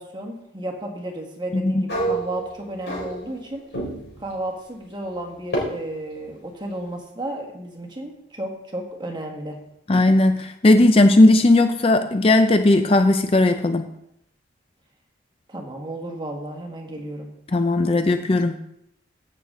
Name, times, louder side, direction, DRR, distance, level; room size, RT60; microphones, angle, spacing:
voice 1, 0.0-3.6 4.2-9.6 15.5-17.3, right 1 dB, 25° right, 2 dB, 1.6 m, -33 dB
voice 2, 1.5-1.8 9.9-13.9 17.5-18.5, left 2 dB, 30° left, 8 dB, 0.5 m, -17 dB
sound 1, 1.9-3.5 3.7-4.2 5.5-5.6, right 2 dB, 70° left, 4.3 m, -27 dB
15.0 x 6.7 x 3.8 m, 0.79 s
head